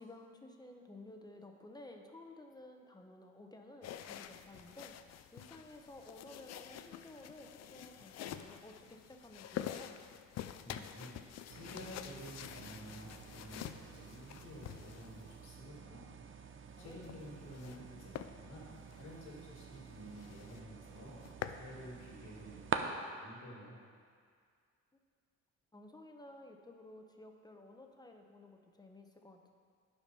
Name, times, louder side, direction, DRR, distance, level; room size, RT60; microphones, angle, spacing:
voice 1, 0.0-5.0 5.3-10.0 16.8-17.0 24.9-25.0 25.7-29.5, left 2 dB, 15° left, 3 dB, 0.9 m, -54 dB
sound 1, 3.8-15.5 16.8-17.8 18.1-18.3 18.8-19.0 19.4-19.5 19.8-19.9 20.2-20.6 21.0-21.6, left 10 dB, 60° left, 0.5 m, -47 dB
voice 2, 10.6-11.2 11.5-16.1 16.4-21.2 21.5-23.8, equal, 85° left, -3 dB, 2.5 m, -51 dB
sound 2, 11.5-22.8, right 7 dB, 40° right, 0.7 m, -47 dB
9.4 x 5.1 x 5.5 m, 2.1 s
cardioid pair, 90°, 30 cm